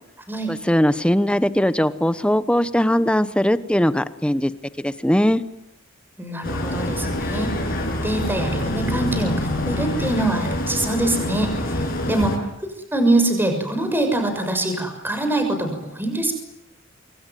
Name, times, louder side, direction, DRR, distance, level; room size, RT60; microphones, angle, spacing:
voice 1, 0.5-4.5 4.8-5.4, equal, 5° left, 13 dB, 1.1 m, -20 dB
voice 2, 6.2-7.5 8.0-12.3 12.9-16.3, right 2 dB, 10° right, 5 dB, 6.5 m, -24 dB
sound 1, 6.4-12.4, left 1 dB, 45° left, 7.2 m, -26 dB
26.5 x 23.0 x 9.3 m, 0.85 s
head